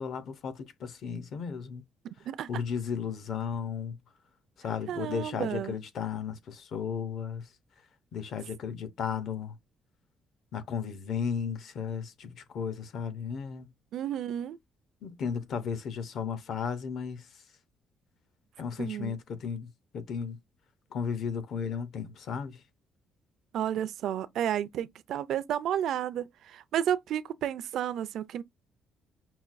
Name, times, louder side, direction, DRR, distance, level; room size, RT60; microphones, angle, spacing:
voice 1, 0.0-1.8 2.5-4.0 4.6-7.5 8.1-9.6 10.5-13.7 15.0-17.4 18.6-20.4 20.9-22.6, left 6 dB, 50° left, 0.6 m, -34 dB
voice 2, 2.0-2.5 4.9-5.7 13.9-14.6 18.8-19.1 23.5-28.4, right 10 dB, 60° right, 0.4 m, -32 dB
5.7 x 2.2 x 2.5 m
cardioid pair, 170°, 0 cm